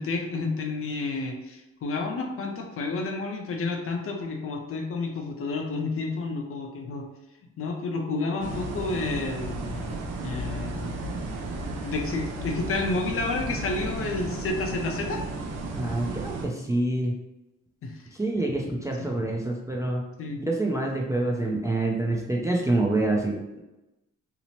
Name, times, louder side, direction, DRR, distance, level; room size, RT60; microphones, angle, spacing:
voice 1, 0.0-7.1 7.6-10.0 10.2-11.0 11.8-15.2 17.8-18.0 19.0-19.1 20.2-20.4, left 3 dB, 50° left, 3 dB, 0.5 m, -30 dB
sound 1, 8.4-16.5, right 2 dB, 65° right, 0.6 m, -33 dB
voice 2, 15.8-17.1 18.2-20.0 20.5-23.6, right 2 dB, 10° right, -1 dB, 0.3 m, -26 dB
2.8 x 2.0 x 2.9 m, 0.97 s
cardioid pair, 90°, 30 cm